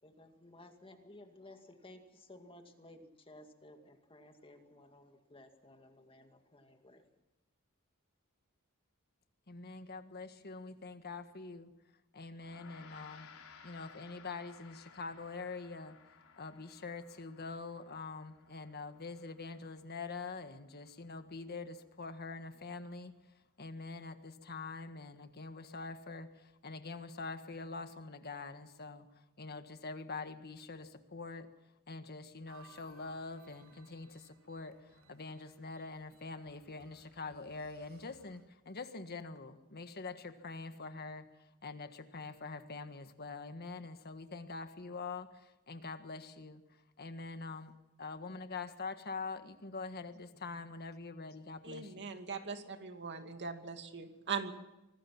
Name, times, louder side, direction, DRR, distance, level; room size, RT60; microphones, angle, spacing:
voice 1, 0.0-7.0, left 1 dB, 25° left, 2.2 m, -56 dB
voice 2, 9.5-11.8 12.1-13.3 13.6-16.0 16.4-23.2 23.6-31.5 31.9-47.7 48.0-52.1, left 4 dB, 50° left, 1.6 m, -45 dB
Gong, 12.4-22.0, left 6 dB, 75° left, 4.3 m, -60 dB
sound 1, 32.5-38.4, right 5 dB, 85° right, 6.3 m, -64 dB
voice 3, 51.6-54.5, right 5 dB, 55° right, 2.5 m, -40 dB
25.5 x 19.5 x 6.0 m
head